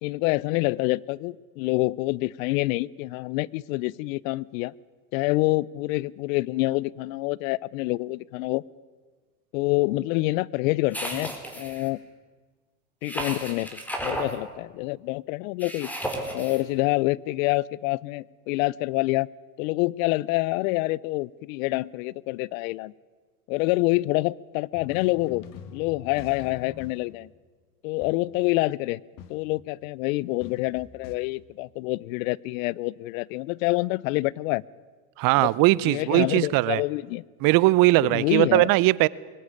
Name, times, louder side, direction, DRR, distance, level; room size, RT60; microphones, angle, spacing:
voice 1, 0.0-4.7 5.1-8.6 9.5-12.0 13.0-13.7 14.0-15.9 16.3-19.3 19.6-22.9 23.5-25.4 25.7-27.3 27.8-29.0 29.3-34.6 35.4-35.5 35.8-37.2 38.0-38.7, left 21 dB, 65° left, 25 dB, 0.7 m, -27 dB
sound 1, 10.9-11.9 13.0-14.3 15.6-16.6, right 1 dB, 5° left, 4.1 m, -33 dB
sound 2, 24.7-27.2 28.0-28.4 29.2-29.7 30.4-31.2, left 8 dB, 45° left, 1.9 m, -45 dB
voice 2, 35.2-36.8 37.4-39.1, right 19 dB, 50° right, 22 dB, 0.7 m, -20 dB
21.5 x 17.5 x 9.9 m, 1.4 s
hypercardioid pair, 100°, 44 cm